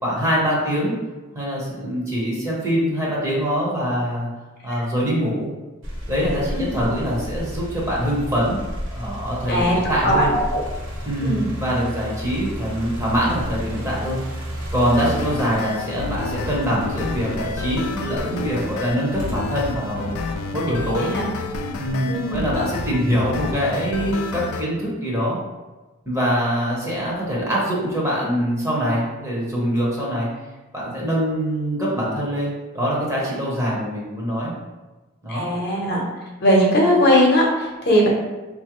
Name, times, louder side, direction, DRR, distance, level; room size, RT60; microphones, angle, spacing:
voice 1, 0.0-1.0 1.3-4.3 4.6-5.5 6.1-8.6 8.9-10.2 11.0-20.1 20.5-21.1 21.8-25.4 26.1-30.3 30.7-34.5 35.2-35.4, equal, 15° right, -5 dB, 0.8 m, -24 dB
sound 1, 5.8-20.9 21.5-22.7, equal, 60° right, 0.8 m, -33 dB
voice 2, 6.5-6.8 9.5-9.8 10.0-10.6 11.2-11.5 21.0-21.3 22.1-22.4 35.3-36.0 36.4-38.1, equal, 50° left, -2 dB, 0.8 m, -19 dB
sound 2, 14.9-24.6, left 3 dB, 80° left, 0.3 m, -30 dB
4.0 x 2.4 x 2.9 m, 1.2 s
head